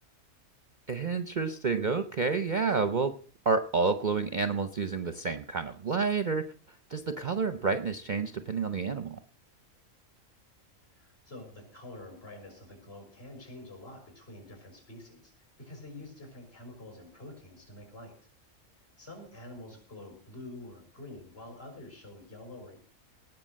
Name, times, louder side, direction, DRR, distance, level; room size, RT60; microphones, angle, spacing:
voice 1, 0.9-3.2 3.5-6.5 6.9-9.2, right 4 dB, 45° right, 10 dB, 0.8 m, -29 dB
voice 2, 11.0-18.1 19.0-22.8, left 1 dB, 45° left, 2 dB, 6.3 m, -47 dB
18.5 x 6.2 x 7.5 m, 0.43 s
omnidirectional pair, 1.4 m